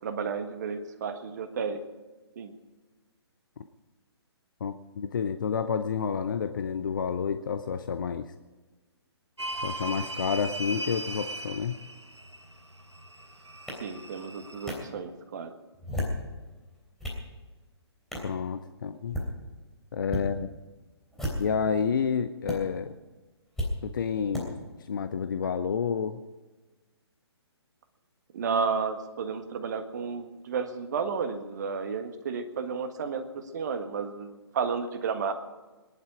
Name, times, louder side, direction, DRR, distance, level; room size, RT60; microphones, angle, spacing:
voice 1, 0.0-1.8 2.3-2.5 13.8-15.5 28.3-35.3, right 5 dB, 40° right, 7 dB, 1.6 m, -32 dB
voice 2, 4.6-8.3 9.6-11.8 18.2-19.2 19.9-20.5 21.4-22.9 23.8-24.6 24.9-26.2, left 6 dB, 50° left, 10 dB, 0.7 m, -29 dB
sound 1, 9.4-14.7, right 1 dB, 85° right, 1.2 m, -38 dB
sound 2, 13.7-13.8 14.7-14.8 15.7-16.2 16.7-17.2 18.1-18.3 19.0-19.3 20.0-20.3 21.1-21.6 22.5-22.6 23.6-23.7 24.3-24.4, left 1 dB, 5° left, 3.2 m, -32 dB
21.5 x 11.0 x 5.0 m, 1.2 s
figure-of-eight pair, 135°, 14 cm